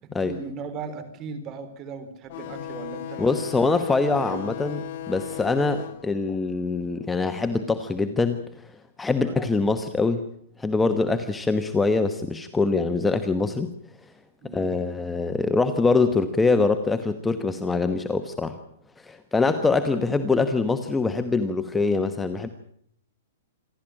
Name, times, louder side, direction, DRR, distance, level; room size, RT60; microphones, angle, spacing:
voice 1, 0.0-3.3 3.8-4.5 9.2-9.5 14.4-14.7, right 4 dB, 25° right, 11 dB, 3.8 m, -38 dB
sound 1, 2.3-7.5, left 10 dB, 45° left, 1.7 m, -37 dB
voice 2, 3.2-4.8 5.1-8.7 9.0-10.2 10.6-13.7 14.5-18.6 19.0-22.5, left 3 dB, 5° left, 9 dB, 1.1 m, -24 dB
27.0 x 12.5 x 8.9 m, 0.68 s
hypercardioid pair, 155°, 0 cm